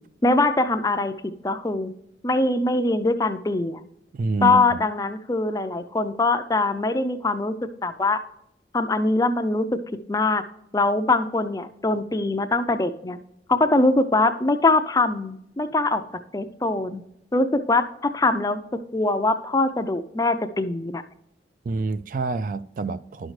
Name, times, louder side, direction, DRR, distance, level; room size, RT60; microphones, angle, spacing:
voice 1, 0.2-1.1 1.4-1.9 2.2-3.8 4.4-7.5 7.8-8.2 8.7-9.8 10.1-10.4 10.7-13.2 13.5-16.0 16.3-17.0 17.3-18.6 18.9-21.0, left 2 dB, 20° left, 0.4 m, -22 dB
voice 2, 4.1-4.8 21.6-23.3, right 3 dB, 45° right, 0.3 m, -27 dB
10.0 x 6.4 x 3.2 m
head